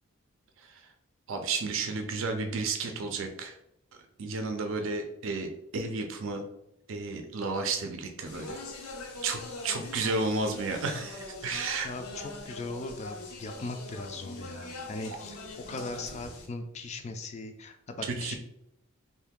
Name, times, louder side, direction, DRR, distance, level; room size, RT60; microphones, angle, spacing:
voice 1, 1.3-3.5 4.2-6.4 6.9-8.6 9.2-11.9 14.6-14.7 18.1-18.3, right 3 dB, 65° right, 5 dB, 0.5 m, -32 dB
Speech, 8.3-16.5, left 2 dB, 85° left, 0.6 m, -42 dB
voice 2, 11.8-18.3, left 2 dB, 30° left, 7 dB, 0.3 m, -39 dB
2.7 x 2.6 x 3.6 m, 0.79 s
head